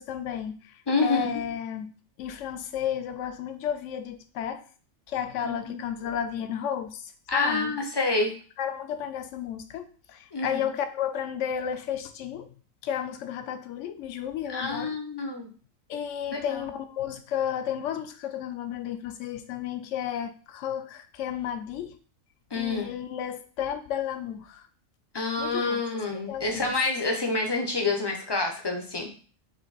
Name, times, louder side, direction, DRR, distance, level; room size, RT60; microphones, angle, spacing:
voice 1, 0.0-1.9 2.2-4.6 5.1-7.7 8.6-12.5 12.8-15.0 15.9-22.0 22.5-24.6 25.4-25.8 26.1-26.7, left 9 dB, 70° left, 9 dB, 0.9 m, -32 dB
voice 2, 0.9-1.3 5.6-5.8 7.3-8.3 10.3-10.5 14.5-15.5 16.3-16.6 22.5-22.9 25.1-29.1, left 3 dB, 30° left, 2 dB, 0.4 m, -27 dB
4.4 x 2.6 x 4.0 m, 0.39 s
omnidirectional pair, 1.4 m